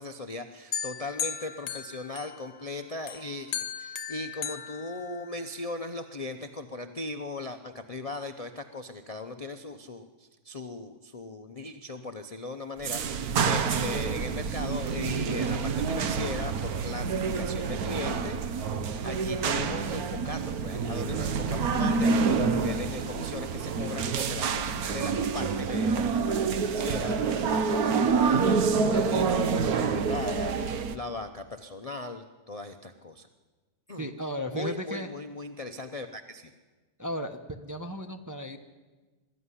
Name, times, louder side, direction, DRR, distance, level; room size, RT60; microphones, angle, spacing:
voice 1, 0.0-18.7 19.0-33.3 33.9-34.1 34.5-36.5, left 2 dB, 30° left, 7 dB, 0.7 m, -38 dB
sound 1, 0.7-2.7 3.1-5.6, left 8 dB, 70° left, 1.3 m, -37 dB
sound 2, 12.8-31.0, right 5 dB, 75° right, 1.4 m, -27 dB
voice 2, 34.0-35.1 37.0-38.6, equal, 15° right, 4 dB, 0.8 m, -35 dB
21.5 x 13.5 x 9.8 m, 1.3 s
omnidirectional pair, 1.6 m